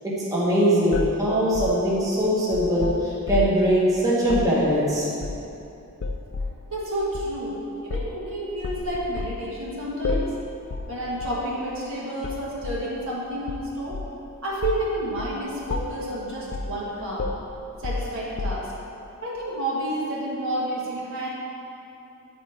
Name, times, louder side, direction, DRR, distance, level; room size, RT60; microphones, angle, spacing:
voice 1, 0.0-5.1, equal, 15° right, -8 dB, 1.2 m, -21 dB
sound 1, 0.9-3.7 4.2-4.5 5.2-5.6 6.0-6.6 7.1-7.3 7.9-8.2 8.6-9.4 10.0-10.4 10.7-10.9 11.2-11.4 12.2-12.9 13.5-14.2 14.6-14.9 15.2-15.4 15.7-16.1 16.5-16.8 17.2-18.9, left 3 dB, 55° left, 0.5 m, -31 dB
voice 2, 6.7-10.3 10.9-14.0 14.4-17.3 17.8-18.7 19.2-21.3, right 1 dB, 60° right, -5 dB, 1.6 m, -30 dB
9.1 x 4.5 x 4.4 m, 2.9 s
head